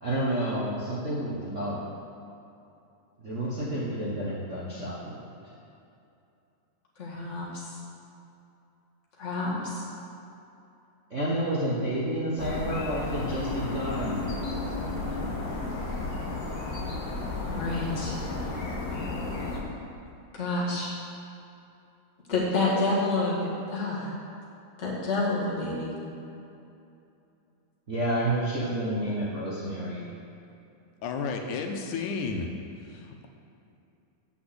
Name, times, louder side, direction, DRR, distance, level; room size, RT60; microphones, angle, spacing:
voice 1, 0.0-1.8 3.2-5.2 11.1-14.2 27.9-30.1, right 1 dB, 65° right, -8 dB, 0.7 m, -30 dB
voice 2, 7.0-7.7 9.2-9.8 17.5-18.2 20.3-20.9 22.3-23.4 23.7-24.1 24.8-26.0, left 2 dB, 25° left, -6 dB, 1.9 m, -28 dB
sound 1, 12.4-19.6, left 2 dB, 50° left, 1.5 m, -33 dB
voice 3, 31.0-32.5 32.8-33.3, left 4 dB, 85° left, 3 dB, 2.3 m, -32 dB
7.8 x 6.3 x 7.9 m, 2.7 s
omnidirectional pair, 3.4 m